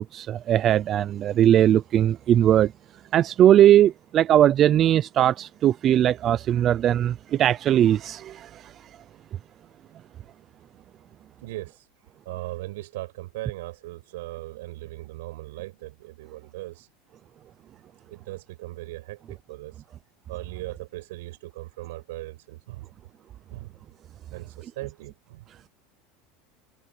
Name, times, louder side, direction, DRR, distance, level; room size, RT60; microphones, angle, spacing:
voice 1, 0.0-2.7 3.1-8.7, right 11 dB, 35° right, 0.5 m, -19 dB
voice 2, 11.4-11.9 12.2-16.9 18.1-19.8 20.3-22.9 23.5-23.7 24.3-25.4, right 18 dB, 85° right, 6.4 m, -38 dB
supercardioid pair, 135°, 0 cm